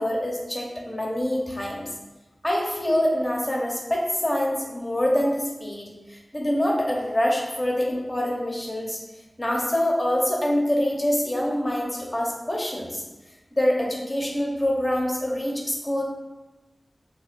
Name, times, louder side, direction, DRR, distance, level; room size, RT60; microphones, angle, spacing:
voice 1, 0.0-1.8 2.4-9.0 9.4-13.0 13.5-16.0, left 1 dB, 20° left, -2 dB, 1.0 m, -25 dB
6.1 x 2.9 x 2.6 m, 1.1 s
wide cardioid pair, 60°, 0 cm